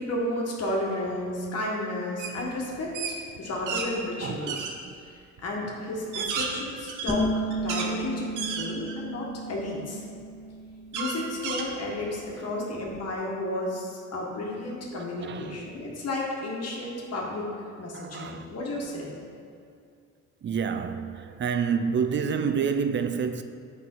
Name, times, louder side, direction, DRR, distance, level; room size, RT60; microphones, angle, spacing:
voice 1, 0.0-4.6 5.4-10.0 10.9-17.4 17.8-19.1, left 1 dB, 55° left, 1.3 m, -32 dB
sound 1, 2.2-2.4 2.7-3.9 4.5-4.7 5.4-5.5 5.9-7.9 8.4-9.1 9.6-9.7 10.9-12.2, right 5 dB, 85° right, 0.8 m, -32 dB
voice 2, 4.2-5.0 5.6-5.9 6.1-6.6 8.8-9.0 12.3-12.6 14.9-15.7 17.9-18.5 20.4-23.4, right 6 dB, 40° right, 0.4 m, -30 dB
sound 2, 7.1-12.5, right 1 dB, 10° left, 0.6 m, -34 dB
6.1 x 5.3 x 4.4 m
cardioid pair, 90°, 30 cm